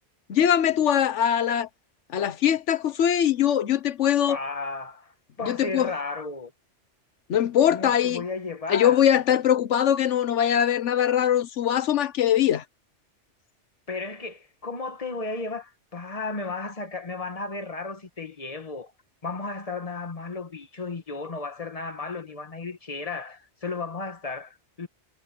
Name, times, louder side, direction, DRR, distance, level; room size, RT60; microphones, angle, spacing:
voice 1, 0.3-1.7 2.1-4.4 5.4-5.9 7.3-8.2 8.7-12.6, left 10 dB, 85° left, 1.2 m, -22 dB
voice 2, 4.3-6.5 7.7-9.0 13.9-18.9 19.2-24.9, left 3 dB, 30° left, 1.7 m, -34 dB
omnidirectional pair, 1.2 m